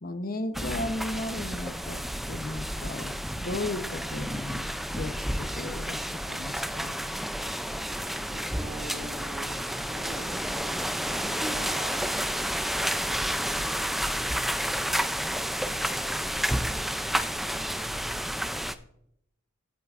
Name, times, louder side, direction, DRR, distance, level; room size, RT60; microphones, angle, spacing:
voice 1, 0.0-7.0, left 2 dB, 45° left, 9 dB, 0.8 m, -35 dB
sound 1, 0.5-18.7, equal, ahead, 0.3 m, -31 dB
voice 2, 8.3-12.2 12.9-14.8, right 1 dB, 25° right, 2 dB, 1.7 m, -44 dB
16.5 x 8.4 x 2.4 m, 0.75 s
head